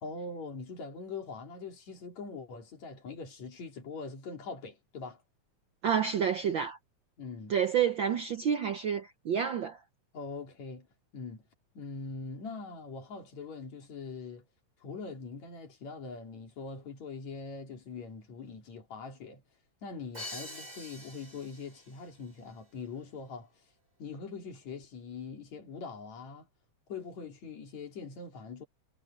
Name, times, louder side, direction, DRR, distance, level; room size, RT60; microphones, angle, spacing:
voice 1, 0.0-5.2 7.2-7.6 10.1-10.9 11.1-11.4 11.7-14.4 14.8-19.4 19.8-23.5 24.0-26.5 26.9-28.7, left 4 dB, 65° left, 4.6 m, -42 dB
voice 2, 5.8-6.8 7.5-9.8, right 8 dB, 80° right, 1.0 m, -29 dB
Crash cymbal, 20.1-22.0, left 1 dB, 10° right, 5.0 m, -45 dB
omnidirectional pair, 3.4 m